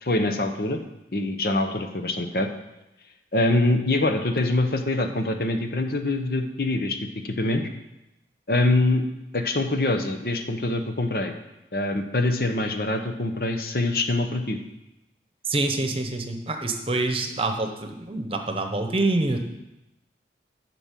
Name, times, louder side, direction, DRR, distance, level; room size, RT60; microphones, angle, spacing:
voice 1, 0.0-0.8 1.1-2.5 3.3-7.0 7.2-7.6 8.5-9.0 9.3-11.3 11.7-14.6, left 2 dB, 55° left, 6 dB, 1.0 m, -24 dB
voice 2, 15.5-19.4, right 2 dB, 30° right, 5 dB, 1.0 m, -26 dB
10.5 x 6.1 x 7.5 m, 0.93 s
head